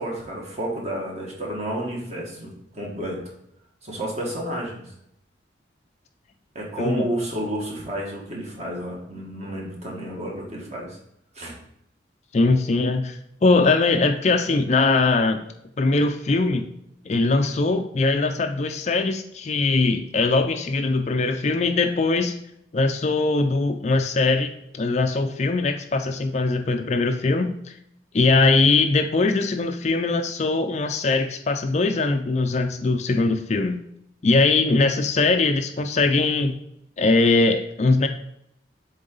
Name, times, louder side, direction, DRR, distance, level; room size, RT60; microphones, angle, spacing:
voice 1, 0.0-3.2 3.8-4.9 6.5-11.0 11.3-11.5, right 1 dB, 35° right, -2 dB, 1.8 m, -31 dB
voice 2, 12.3-15.4 15.8-16.7 17.0-22.3 22.7-27.7 28.1-33.8 34.2-36.5 37.0-38.1, left 3 dB, 35° left, 7 dB, 0.4 m, -21 dB
7.5 x 3.9 x 3.9 m, 0.75 s
head